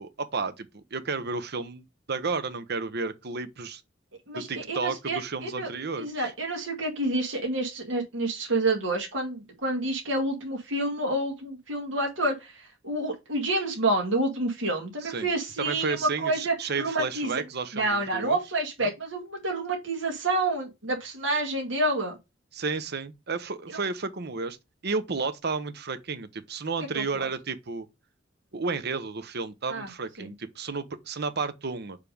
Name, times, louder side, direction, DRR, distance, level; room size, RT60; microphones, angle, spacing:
voice 1, 0.0-3.8 4.3-6.3 15.0-15.3 15.6-18.4 18.8-18.9 22.5-24.6 24.8-27.9 28.5-32.0, right 4 dB, 55° right, 0.9 m, -32 dB
voice 2, 4.3-5.7 6.0-17.4 17.7-22.1 26.9-27.3 29.7-29.9 30.2-30.3, right 2 dB, 75° right, 1.9 m, -28 dB
6.6 x 3.6 x 5.1 m
head